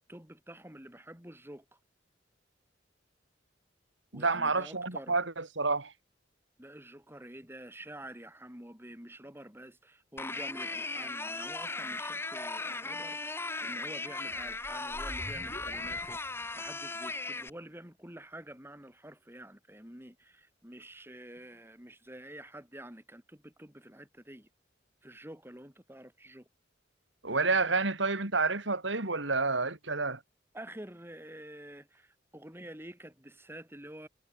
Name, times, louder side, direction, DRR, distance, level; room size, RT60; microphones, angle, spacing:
voice 1, 0.0-1.6 4.1-5.2 6.6-24.5 25.0-26.5 30.5-34.1, right 1 dB, 10° right, 4.1 m, -48 dB
voice 2, 4.1-5.9 27.2-30.2, right 3 dB, 85° right, 3.6 m, -29 dB
sound 1, 10.2-17.5, left 3 dB, 15° left, 1.0 m, -37 dB
sound 2, 14.3-17.0, left 1 dB, 30° left, 4.5 m, -46 dB
head